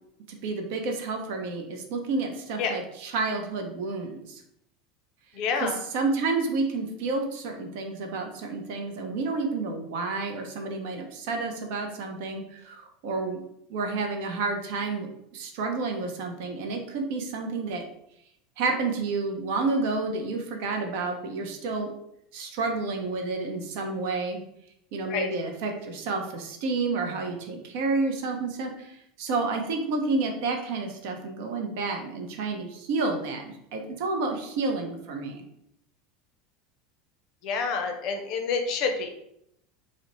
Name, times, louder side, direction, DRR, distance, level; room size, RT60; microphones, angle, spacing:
voice 1, 0.3-4.4 5.6-13.4 13.7-15.1 15.3-17.8 18.6-21.9 22.3-24.4 24.9-35.4, right 3 dB, 60° right, 4 dB, 0.5 m, -30 dB
voice 2, 5.3-5.8 25.1-25.3 37.4-39.1, left 5 dB, 55° left, 4 dB, 0.4 m, -28 dB
2.4 x 2.0 x 2.9 m, 0.77 s
hypercardioid pair, 80°, 0 cm